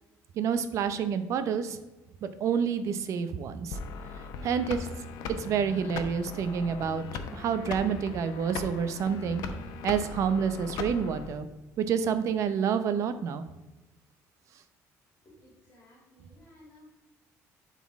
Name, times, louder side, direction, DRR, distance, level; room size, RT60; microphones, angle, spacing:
voice 1, 0.4-1.8 2.2-3.8 4.4-4.9 5.4-7.1 7.3-9.4 9.8-11.5 11.8-13.4, right 7 dB, 55° right, 10 dB, 0.7 m, -28 dB
sound 1, 3.7-11.3, left 4 dB, 80° left, 0.8 m, -39 dB
voice 2, 15.2-16.9, left 1 dB, 35° left, -6 dB, 2.6 m, -56 dB
11.5 x 4.2 x 3.6 m, 1.1 s
cardioid pair, 150°, 6 cm